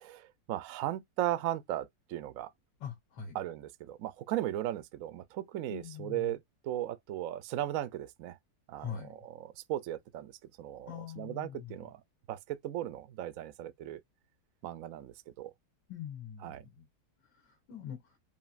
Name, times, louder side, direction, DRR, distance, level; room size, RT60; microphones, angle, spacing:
voice 1, 0.0-2.5 3.3-8.4 8.7-10.3 10.6-12.0 12.3-14.0 14.6-15.5 16.4-16.6, right 13 dB, 70° right, 0.8 m, -37 dB
voice 2, 2.8-3.4 5.7-6.3 8.8-9.1 10.9-11.8 15.9-16.9 17.3-18.2, left 8 dB, 75° left, 2.0 m, -43 dB
5.1 x 2.9 x 2.5 m
omnidirectional pair, 2.0 m